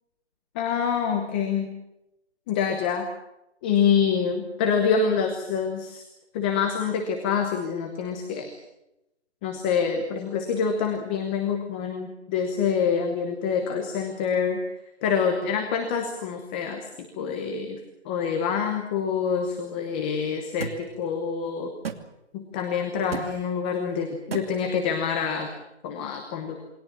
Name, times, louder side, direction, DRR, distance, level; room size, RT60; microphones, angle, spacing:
voice 1, 0.5-1.7 2.5-3.1 3.6-6.0 6.3-8.6 9.4-14.6 15.0-21.7 22.3-25.5 25.8-26.6, left 6 dB, 10° left, 4 dB, 0.9 m, -26 dB
sound 1, 20.6-20.8 21.8-22.0 23.1-23.3 24.3-24.5, right 6 dB, 55° right, 2.7 m, -31 dB
27.5 x 23.0 x 7.3 m, 0.90 s
hypercardioid pair, 165°, 35 cm